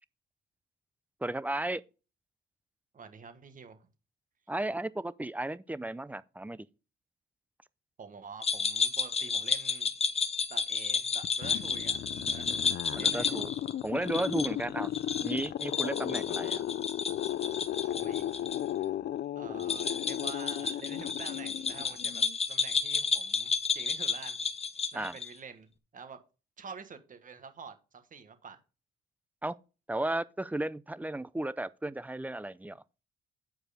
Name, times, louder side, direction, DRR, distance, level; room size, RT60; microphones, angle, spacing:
voice 1, 1.2-1.8 4.5-6.7 12.9-13.5 13.8-14.9 15.2-16.6 24.9-25.2 29.4-29.5 29.9-32.8, right 1 dB, 10° right, 0.4 m, -34 dB
voice 2, 2.9-3.9 8.0-9.9 10.5-13.4 17.9-18.4 19.3-24.4 24.9-26.2 26.6-28.6, right 5 dB, 40° right, 1.5 m, -48 dB
sound 1, 8.4-18.6 18.8-18.9 19.6-25.4, left 5 dB, 30° left, 0.8 m, -32 dB
sound 2, 11.2-22.4, left 12 dB, 55° left, 0.4 m, -35 dB
9.0 x 4.7 x 5.0 m
cardioid pair, 90°, 20 cm